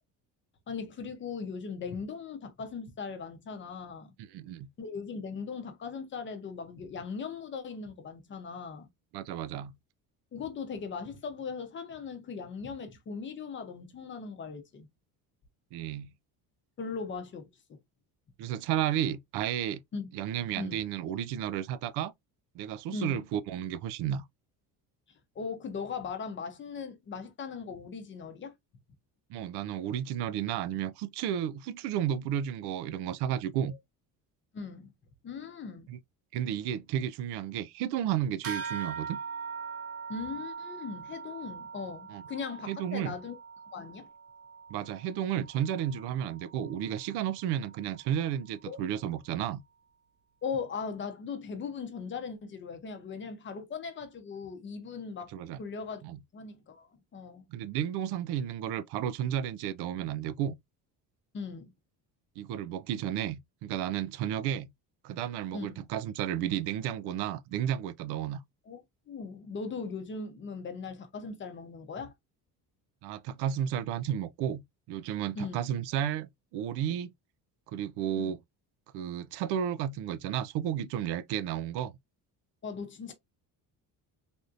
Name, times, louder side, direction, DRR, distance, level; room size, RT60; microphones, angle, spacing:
voice 1, 0.7-4.1 4.8-8.9 10.3-14.9 16.8-17.8 19.9-20.1 20.5-20.8 22.9-23.2 25.4-28.5 34.5-34.9 35.2-35.9 40.1-43.3 43.7-44.1 48.7-48.8 50.4-56.1 56.3-56.9 57.1-57.4 61.3-61.7 65.5-65.8 68.7-72.1 75.4-75.6 78.2-78.3 82.6-83.1, left 5 dB, 30° left, 0.6 m, -39 dB
voice 2, 4.2-4.7 9.1-9.7 15.7-16.1 18.4-19.8 20.1-22.1 22.5-24.2 29.3-33.7 35.9-36.0 36.3-39.2 42.1-42.2 42.7-43.1 44.7-49.6 55.3-55.6 56.0-56.2 57.5-60.5 62.4-64.7 65.0-68.4 73.0-74.6 74.9-77.1 77.7-78.4 78.9-82.0, right 10 dB, 90° right, 0.5 m, -32 dB
sound 1, 38.4-48.2, right 6 dB, 35° right, 0.7 m, -42 dB
3.5 x 2.6 x 2.4 m
cardioid pair, 160°, 39 cm